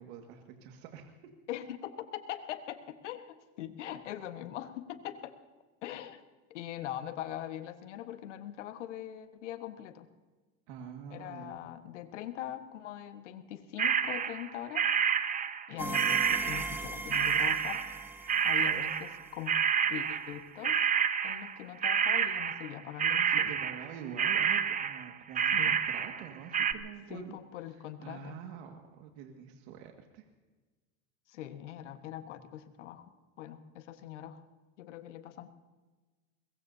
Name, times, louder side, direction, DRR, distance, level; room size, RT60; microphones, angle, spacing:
voice 1, 0.0-1.3 10.7-11.6 18.6-18.9 23.3-27.4 27.7-30.3, right 7 dB, 70° right, 3 dB, 2.0 m, -46 dB
voice 2, 1.5-5.4 5.8-10.1 11.1-14.9 15.7-17.8 18.4-19.5 19.9-20.8 21.2-23.5 25.5-25.8 27.1-28.4 31.3-33.1 33.4-34.4 34.8-35.5, left 11 dB, 90° left, 9 dB, 1.5 m, -42 dB
sound 1, 13.8-14.5 14.7-16.9 17.1-26.3 26.5-26.7, right 7 dB, 20° right, 0.9 m, -29 dB
sound 2, 15.8-19.5, right 2 dB, 5° right, 1.3 m, -40 dB
24.0 x 21.5 x 2.8 m, 1.3 s
supercardioid pair, 115°, 35 cm